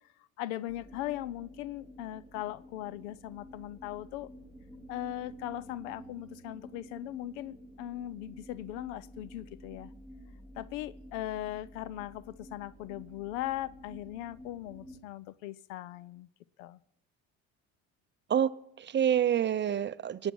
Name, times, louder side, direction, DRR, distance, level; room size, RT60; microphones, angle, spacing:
voice 1, 0.4-4.3 4.9-9.9 10.6-16.3 16.6-16.8, left 14 dB, 90° left, 20 dB, 0.6 m, -39 dB
sound 1, 0.7-15.0, equal, 20° left, 3.2 m, -51 dB
voice 2, 18.3-20.3, right 9 dB, 30° right, 15 dB, 0.6 m, -28 dB
21.5 x 8.9 x 6.3 m, 0.80 s
supercardioid pair, 85°, 35 cm